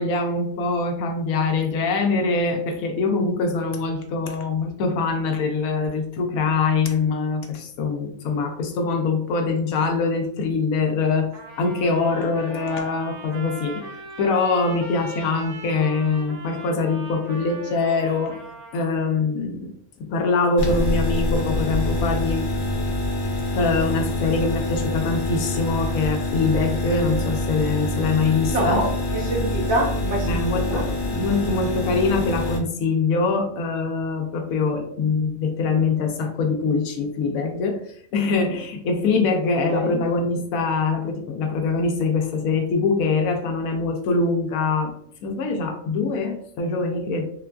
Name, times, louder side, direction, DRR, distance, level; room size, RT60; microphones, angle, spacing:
voice 1, 0.0-11.3 11.6-13.8 14.2-18.4 18.7-19.7 20.0-22.5 23.6-28.8 30.2-37.8 38.1-44.9 45.2-47.2, left 4 dB, 75° left, 3 dB, 1.0 m, -23 dB
Trumpet, 11.3-19.1, right 2 dB, 85° right, 1.1 m, -40 dB
sound 1, 20.6-32.6, left 1 dB, 60° left, 0.5 m, -26 dB
voice 2, 28.4-30.9 39.7-40.0, right 1 dB, 60° right, 0 dB, 0.8 m, -26 dB
3.8 x 2.3 x 2.2 m, 0.67 s
omnidirectional pair, 1.5 m